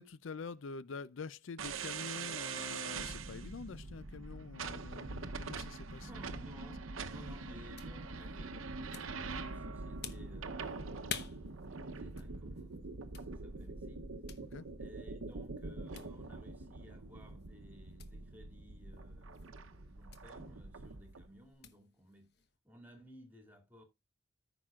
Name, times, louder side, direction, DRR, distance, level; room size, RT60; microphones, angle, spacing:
voice 1, 0.0-6.1 14.5-14.7, left 4 dB, 75° left, 0.5 m, -46 dB
sound 1, 1.6-21.3, right 4 dB, 90° right, 0.8 m, -44 dB
voice 2, 6.0-14.0 14.8-22.3 22.6-23.8, equal, 10° right, 2.3 m, -57 dB
sound 2, 7.0-22.6, left 7 dB, 50° left, 1.0 m, -53 dB
14.5 x 6.0 x 2.4 m
head